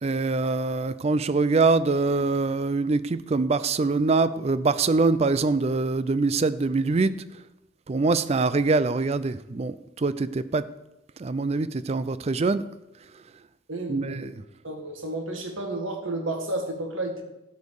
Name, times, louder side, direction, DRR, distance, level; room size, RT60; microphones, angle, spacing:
voice 1, 0.0-7.1 7.9-10.6 11.2-12.7 13.9-14.4, right 3 dB, 35° right, 15 dB, 0.4 m, -24 dB
voice 2, 13.7-14.2 14.6-17.2, right 2 dB, 85° right, 2 dB, 2.0 m, -31 dB
12.0 x 5.4 x 6.5 m, 0.91 s
head